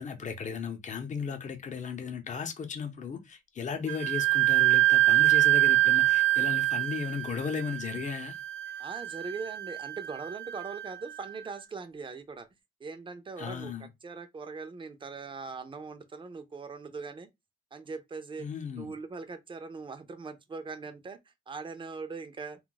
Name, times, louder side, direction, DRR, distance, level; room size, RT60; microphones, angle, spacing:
voice 1, 0.0-8.3 13.4-13.9 18.4-18.9, left 6 dB, 40° left, 0.7 m, -36 dB
Wind instrument woodwind instrument, 3.9-11.3, right 16 dB, 75° right, 0.5 m, -25 dB
voice 2, 8.8-12.5 12.8-17.3 17.7-18.5 18.7-22.6, right 4 dB, 25° right, 0.6 m, -41 dB
2.3 x 2.1 x 3.9 m
cardioid pair, 90°, 20 cm